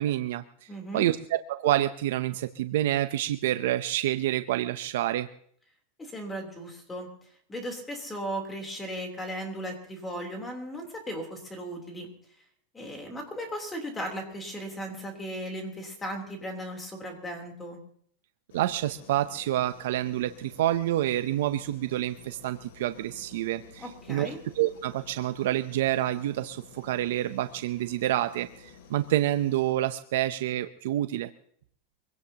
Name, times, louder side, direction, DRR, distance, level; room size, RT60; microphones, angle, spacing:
voice 1, 0.0-5.3 18.5-31.3, right 13 dB, 75° right, 11 dB, 0.6 m, -28 dB
voice 2, 0.7-1.1 6.0-7.1 7.5-12.1 12.7-17.8 23.8-24.4, equal, 10° left, 3 dB, 3.3 m, -36 dB
sound 1, 18.5-29.7, left 6 dB, 80° left, 2.6 m, -52 dB
24.0 x 17.0 x 2.9 m, 0.62 s
supercardioid pair, 150°, 0 cm